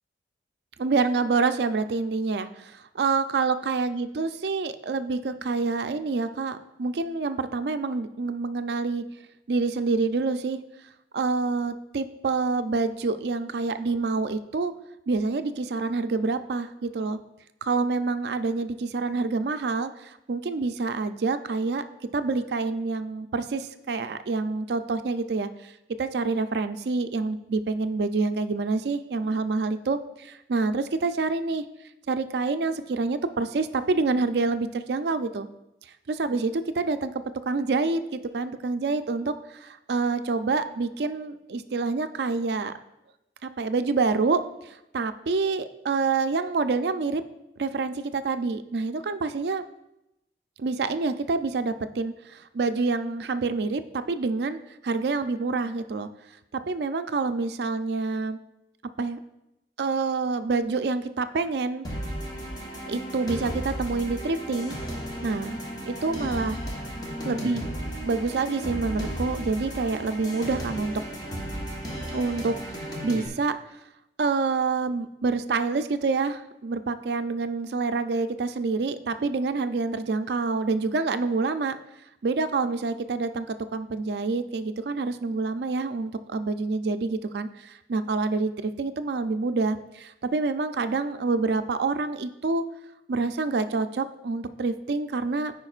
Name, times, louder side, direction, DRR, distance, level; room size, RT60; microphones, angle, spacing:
voice 1, 0.8-9.0 9.5-10.6 11.1-14.7 15.1-17.2 17.6-21.8 22.1-25.7 26.0-31.6 32.1-35.5 36.1-37.1 37.5-42.7 43.4-47.2 47.6-49.6 50.6-54.6 54.8-56.1 56.7-58.4 59.0-59.2 59.8-61.9 62.9-64.7 65.2-65.6 65.9-66.6 67.2-67.7 68.1-71.0 72.1-73.5 74.2-81.8 82.2-83.5 83.7-92.6 93.1-95.5, right 4 dB, 65° right, 10 dB, 0.4 m, -27 dB
sound 1, 61.8-73.3, equal, 20° left, 1.0 m, -34 dB
14.0 x 5.1 x 2.4 m, 0.90 s
head